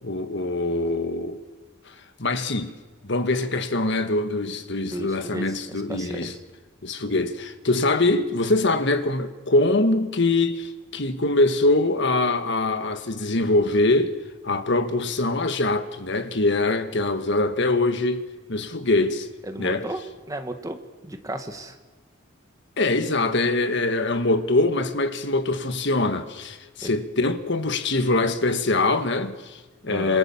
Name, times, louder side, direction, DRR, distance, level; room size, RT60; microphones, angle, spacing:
voice 1, 0.0-1.4 1.9-2.8 3.0-6.3 6.8-14.2 14.4-19.3 19.6-19.9 22.8-30.2, left 2 dB, 55° left, 1.6 m, -23 dB
voice 2, 4.8-6.3 19.4-20.0 20.3-20.8 21.0-21.8 26.8-26.9 29.9-30.2, right 1 dB, 15° right, 1.8 m, -34 dB
27.0 x 26.5 x 7.3 m
head